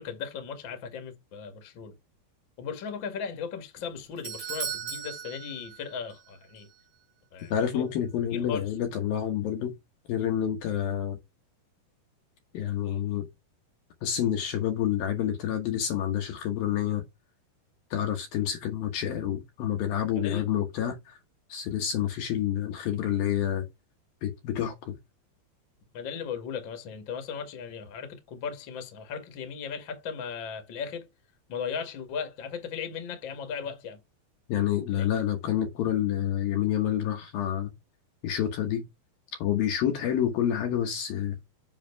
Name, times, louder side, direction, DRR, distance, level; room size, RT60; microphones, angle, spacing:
voice 1, 0.0-1.9 2.6-6.7 7.3-7.9 8.3-8.6 20.2-20.5 25.9-31.1 31.5-34.0 34.9-35.1, left 6 dB, 40° left, 1.9 m, -37 dB
Doorbell, 3.8-6.3 6.6-6.7 7.4-7.5, right 9 dB, 55° right, 2.8 m, -37 dB
voice 2, 7.5-9.7 10.1-11.2 12.5-13.3 14.0-17.0 17.9-21.2 21.5-23.6 24.2-25.0 34.5-37.7 38.2-38.9 39.4-41.4, left 10 dB, 65° left, 2.7 m, -28 dB
7.4 x 6.2 x 3.4 m
omnidirectional pair, 5.1 m